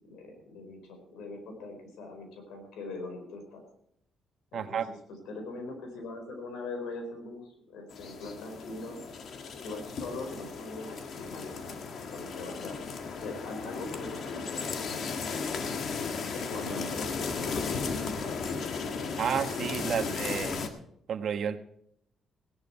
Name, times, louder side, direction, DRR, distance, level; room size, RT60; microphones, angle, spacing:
voice 1, 0.0-3.6 4.5-9.0 9.6-11.8 12.1-12.8 13.2-15.0 16.1-18.5 20.0-20.4, left 2 dB, 85° left, 5 dB, 4.5 m, -42 dB
voice 2, 4.5-4.9 19.2-20.6 21.1-21.6, right 8 dB, 60° right, 8 dB, 1.2 m, -31 dB
sound 1, 7.9-20.7, left 5 dB, 60° left, 1.7 m, -35 dB
17.5 x 11.0 x 4.4 m, 0.70 s
cardioid pair, 90°, 0 cm